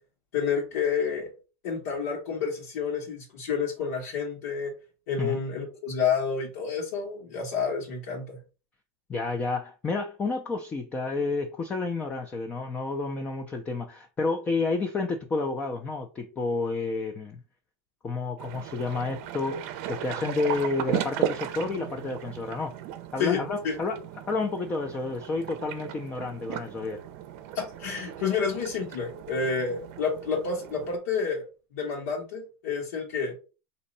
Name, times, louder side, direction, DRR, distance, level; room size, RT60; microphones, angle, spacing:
voice 1, 0.3-1.3 1.6-4.7 5.1-8.4 23.2-23.4 23.6-23.8 27.5-31.4 31.7-33.3, left 6 dB, 80° left, -1 dB, 1.4 m, -29 dB
voice 2, 9.1-17.4 18.0-22.8 23.1-24.0 24.3-27.0, left 3 dB, 15° left, 5 dB, 0.5 m, -30 dB
sound 1, 18.4-31.0, right 10 dB, 55° right, 0.6 m, -36 dB
4.2 x 2.7 x 4.1 m, 0.33 s
supercardioid pair, 150°, 8 cm